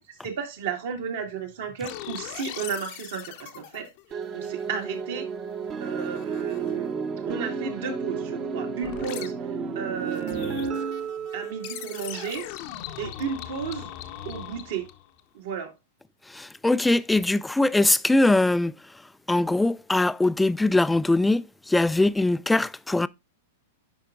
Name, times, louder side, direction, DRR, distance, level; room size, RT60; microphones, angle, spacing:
voice 1, 0.1-3.9 4.3-5.3 5.8-6.9 7.3-9.3 9.8-11.0 11.3-12.4 13.0-13.9 14.2-14.9 15.3-15.7, right 7 dB, 65° right, 1.8 m, -33 dB
sound 1, 1.8-5.1 5.4-6.9 8.8-9.3 10.0-15.2, left 12 dB, 50° left, 0.8 m, -41 dB
sound 2, 4.1-12.5, right 5 dB, 30° right, 0.8 m, -32 dB
voice 2, 16.3-18.7 19.3-23.1, left 2 dB, 5° left, 0.3 m, -22 dB
10.0 x 5.1 x 2.4 m
hypercardioid pair, 105°, 0 cm